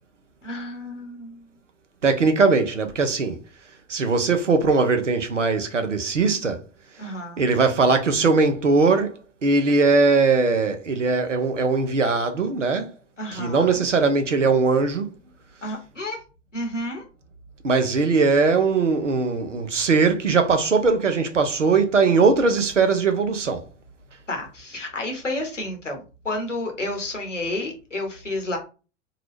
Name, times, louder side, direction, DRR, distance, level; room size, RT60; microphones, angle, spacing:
voice 1, 0.4-1.5 7.0-7.5 13.2-13.8 15.6-16.2 16.5-17.0 24.3-28.6, left 1 dB, 90° left, 1.0 m, -31 dB
voice 2, 2.0-3.4 3.9-6.6 7.4-12.9 13.3-15.1 17.6-23.7, right 4 dB, 85° right, 0.6 m, -20 dB
2.8 x 2.3 x 3.2 m
figure-of-eight pair, 80°, 36 cm